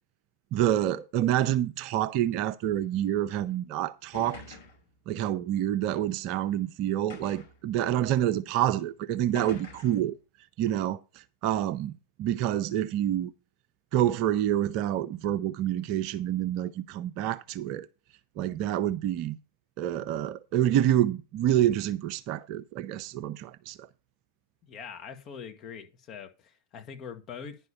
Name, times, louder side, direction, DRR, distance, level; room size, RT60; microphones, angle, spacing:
voice 1, 0.5-4.6 5.1-10.1 10.6-11.0 11.4-11.9 12.2-13.3 13.9-17.9 18.4-19.4 19.8-23.8, right 12 dB, 45° right, 0.6 m, -27 dB
sound 1, 3.5-3.6 4.1-4.9 5.8-5.9 7.1-7.6 8.5-8.6 9.4-10.1, left 4 dB, 55° left, 5.4 m, -45 dB
voice 2, 24.6-27.6, left 7 dB, 35° left, 2.0 m, -43 dB
10.5 x 5.4 x 7.0 m
figure-of-eight pair, 90°, 0 cm